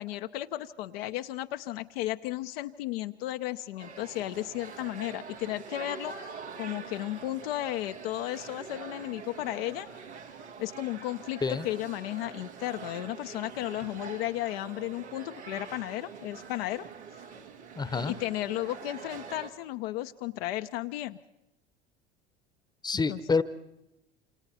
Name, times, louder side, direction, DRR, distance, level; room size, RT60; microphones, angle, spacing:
voice 1, 0.0-9.9 10.6-16.9 18.1-21.2 23.1-23.2, left 15 dB, 60° left, 8 dB, 0.8 m, -34 dB
sound 1, 3.8-19.5, right 6 dB, 85° right, 2.1 m, -45 dB
voice 2, 17.8-18.2 22.8-23.4, left 4 dB, 10° left, 15 dB, 1.0 m, -27 dB
27.5 x 27.0 x 4.3 m, 0.89 s
figure-of-eight pair, 75°, 33 cm